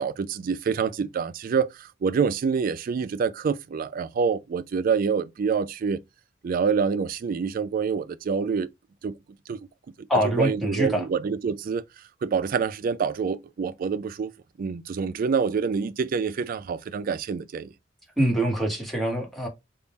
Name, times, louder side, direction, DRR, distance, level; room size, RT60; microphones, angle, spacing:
voice 1, 0.0-6.0 6.4-8.7 9.0-9.2 9.5-9.7 10.0-11.8 12.2-14.3 14.6-17.7, right 6 dB, 45° right, 0.3 m, -26 dB
voice 2, 10.1-11.0 18.2-19.5, right 1 dB, ahead, 1.0 m, -24 dB
3.6 x 2.0 x 4.1 m
head